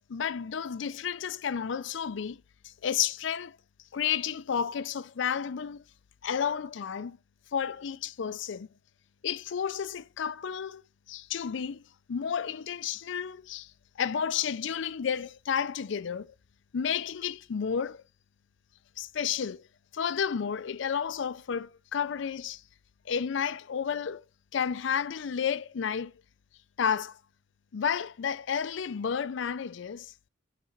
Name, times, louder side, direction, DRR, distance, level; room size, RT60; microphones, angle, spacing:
voice 1, 0.1-3.6 3.9-5.8 6.2-7.2 7.5-8.7 9.2-10.8 11.1-11.8 12.1-13.7 14.0-16.3 16.7-18.0 19.0-19.7 19.9-22.6 23.1-24.2 24.5-26.1 26.8-27.2 27.7-30.1, left 7 dB, 65° left, 0.4 m, -31 dB
8.1 x 4.2 x 5.8 m
head